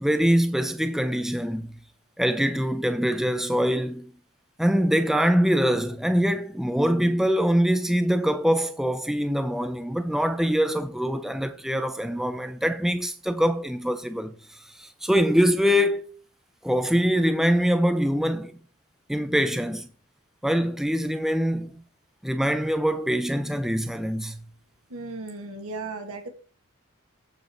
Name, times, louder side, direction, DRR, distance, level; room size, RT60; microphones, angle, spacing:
voice 1, 0.0-1.7 2.2-4.1 4.6-14.3 14.8-16.0 16.6-18.5 19.1-19.9 20.4-21.8 22.2-24.4, equal, ahead, 0.4 m, -24 dB
voice 2, 24.9-26.3, right 3 dB, 90° right, 1.8 m, -35 dB
14.5 x 5.1 x 3.0 m
head